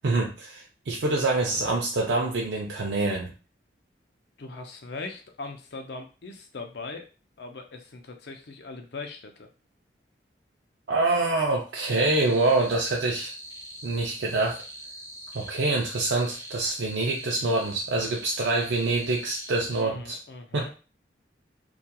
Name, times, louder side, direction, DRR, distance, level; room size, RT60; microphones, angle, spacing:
voice 1, 0.0-3.3 10.9-13.3 13.8-14.6 15.3-20.2 20.5-20.7, right 2 dB, 75° right, -1 dB, 0.4 m, -26 dB
voice 2, 4.4-7.1 7.4-9.5 19.7-20.7, left 3 dB, 65° left, 4 dB, 0.5 m, -40 dB
sound 1, 11.8-19.8, right 1 dB, 15° right, 0.7 m, -42 dB
2.8 x 2.3 x 2.2 m, 0.33 s
head